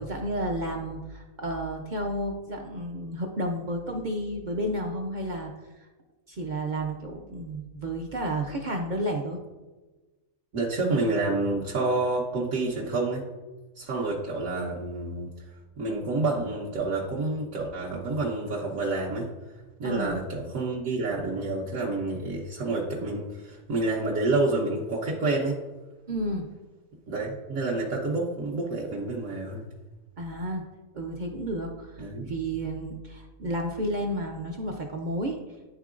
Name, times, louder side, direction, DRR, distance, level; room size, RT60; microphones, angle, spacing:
voice 1, 0.0-5.5 6.3-9.4 19.8-20.2 26.1-26.5 30.2-30.7 30.9-35.4, right 1 dB, 55° right, 2 dB, 0.5 m, -31 dB
voice 2, 10.5-13.2 13.7-19.3 19.8-25.6 27.1-29.6 32.0-32.3, right 2 dB, 75° right, -5 dB, 1.3 m, -28 dB
10.5 x 3.7 x 2.4 m, 1.2 s
omnidirectional pair, 1.4 m